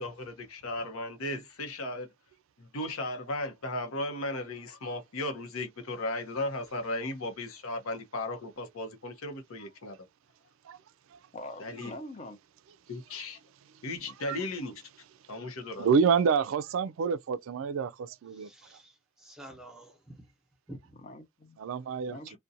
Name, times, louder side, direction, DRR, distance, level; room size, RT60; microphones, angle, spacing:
voice 1, 0.0-2.1 2.6-10.0 11.6-12.0 12.9-13.4 13.8-14.7 15.3-15.9, left 2 dB, 85° left, 0.7 m, -36 dB
voice 2, 11.3-12.4 21.0-21.6 22.1-22.4, left 1 dB, 35° left, 0.6 m, -43 dB
voice 3, 15.8-18.5 21.6-22.2, right 6 dB, 70° right, 0.3 m, -27 dB
voice 4, 18.3-20.3 20.7-21.0, right 1 dB, 5° right, 0.9 m, -49 dB
2.5 x 2.2 x 2.6 m
head